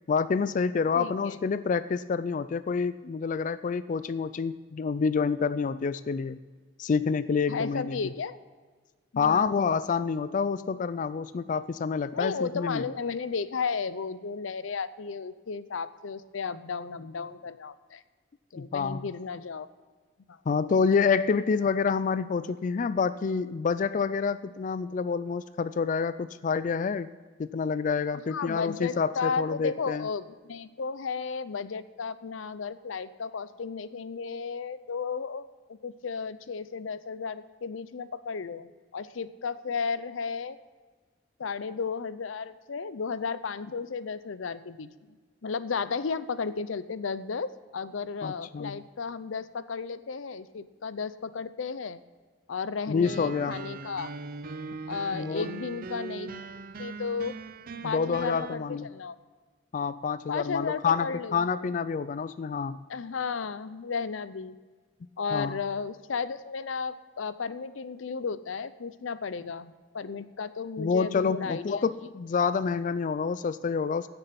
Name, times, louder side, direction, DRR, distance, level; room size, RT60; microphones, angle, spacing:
voice 1, 0.1-6.4 6.8-8.0 9.2-12.8 18.6-19.0 20.5-27.1 27.4-30.1 48.2-48.8 52.9-53.6 55.1-55.5 57.8-58.9 59.7-62.8 65.3-65.6 70.8-74.1, left 5 dB, 40° left, 14 dB, 0.3 m, -28 dB
voice 2, 1.0-1.3 7.5-8.4 9.1-9.6 12.1-18.0 18.5-19.7 20.3-20.4 28.3-35.4 35.7-40.6 41.4-52.0 52.5-54.1 54.9-56.4 56.8-57.4 57.8-59.2 60.3-61.5 62.9-64.6 65.2-71.8, left 5 dB, 90° left, 15 dB, 0.6 m, -34 dB
sound 1, 53.0-58.5, right 4 dB, 50° right, 0.6 m, -40 dB
16.0 x 6.9 x 5.9 m, 1.4 s
head